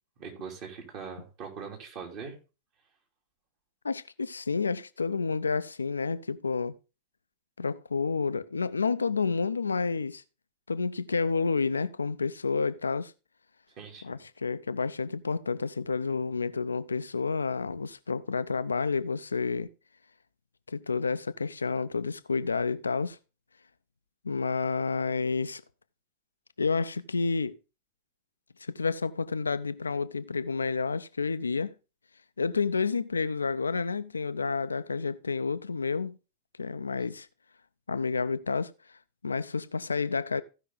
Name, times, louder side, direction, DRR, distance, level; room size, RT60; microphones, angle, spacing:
voice 1, 0.2-2.4 13.8-14.2, right 6 dB, 40° right, 3.0 m, -41 dB
voice 2, 3.8-6.7 7.6-10.2 10.7-13.1 14.0-19.7 20.7-23.2 24.2-25.6 26.6-27.6 28.6-31.7 32.4-36.2 36.6-37.3 37.9-38.7 39.2-40.4, left 4 dB, 75° left, 0.5 m, -30 dB
15.5 x 5.7 x 3.8 m
figure-of-eight pair, 90°, 0 cm